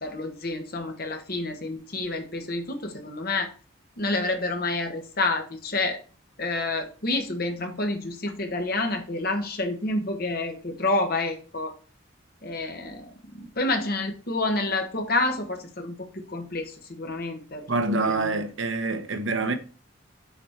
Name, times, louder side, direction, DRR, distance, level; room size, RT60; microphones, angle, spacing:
voice 1, 0.0-3.5 4.0-6.0 6.4-11.7 12.4-17.7 18.0-18.4, left 2 dB, 45° left, 1.3 m, -29 dB
voice 2, 17.7-19.5, right 3 dB, 70° right, 0.9 m, -26 dB
7.0 x 4.3 x 4.5 m
head